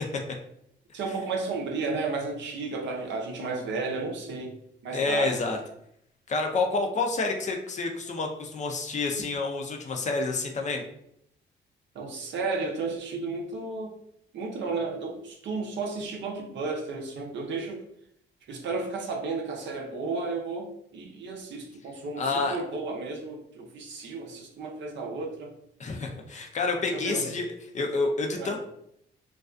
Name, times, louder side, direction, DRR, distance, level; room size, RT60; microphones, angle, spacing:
voice 1, 0.9-4.5 4.8-5.3 11.9-13.9 14.3-17.8 18.5-25.5 26.9-27.3 28.4-28.5, right 3 dB, 65° right, 1 dB, 0.6 m, -33 dB
voice 2, 4.9-5.6 6.3-10.8 22.2-22.6 25.8-27.5 27.7-28.6, left 3 dB, 35° left, 2 dB, 0.4 m, -28 dB
2.3 x 2.3 x 2.4 m, 0.74 s
cardioid pair, 90°, 20 cm